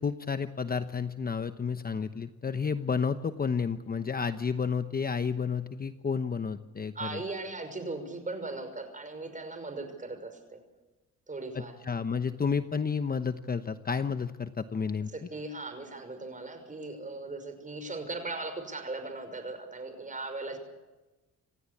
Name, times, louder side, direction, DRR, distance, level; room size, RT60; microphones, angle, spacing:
voice 1, 0.0-7.2 11.5-15.1, left 5 dB, 30° left, 10 dB, 1.0 m, -31 dB
voice 2, 6.9-10.6 11.3-11.8 15.1-20.6, right 3 dB, 25° right, 8 dB, 6.0 m, -38 dB
28.0 x 16.0 x 8.6 m, 1.1 s
cardioid pair, 90°, 30 cm